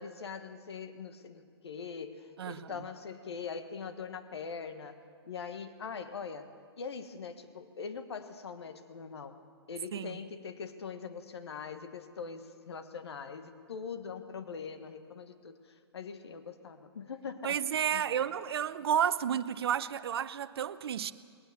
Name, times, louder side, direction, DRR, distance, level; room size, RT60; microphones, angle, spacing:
voice 1, 0.0-5.0 5.2-6.5 6.8-9.4 9.7-17.6 17.9-18.2, left 6 dB, 75° left, 1.6 m, -42 dB
voice 2, 2.4-2.7 9.9-10.2 17.4-21.1, right 9 dB, 65° right, 0.8 m, -31 dB
20.0 x 19.0 x 7.1 m
hypercardioid pair, 125°, 14 cm